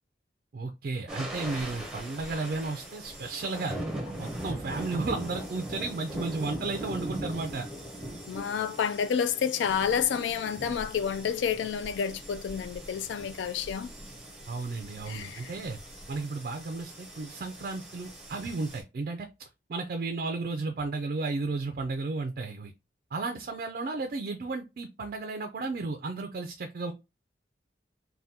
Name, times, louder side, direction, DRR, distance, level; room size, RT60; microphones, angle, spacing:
voice 1, 0.5-3.8 4.2-7.7 14.5-15.8 16.1-19.3 19.7-22.7 23.1-26.9, right 3 dB, 50° right, 0.3 m, -33 dB
sound 1, 1.1-18.8, right 1 dB, 5° right, 0.6 m, -40 dB
voice 2, 8.3-13.9 15.1-15.5, left 7 dB, 80° left, 0.3 m, -29 dB
3.5 x 2.2 x 2.7 m
head